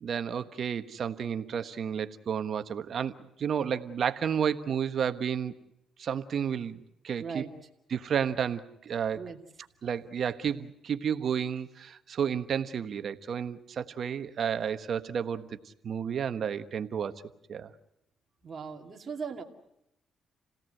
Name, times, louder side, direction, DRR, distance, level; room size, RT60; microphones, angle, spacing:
voice 1, 0.0-3.1 3.4-5.5 6.0-6.8 7.0-7.4 7.9-9.2 9.8-15.5 15.8-17.1 17.5-17.7, right 7 dB, 55° right, 10 dB, 1.2 m, -31 dB
voice 2, 7.2-7.5 9.1-9.4 18.4-19.4, right 5 dB, 40° right, 1 dB, 2.6 m, -38 dB
29.0 x 17.5 x 7.8 m, 0.81 s
cardioid pair, 90°, 0 cm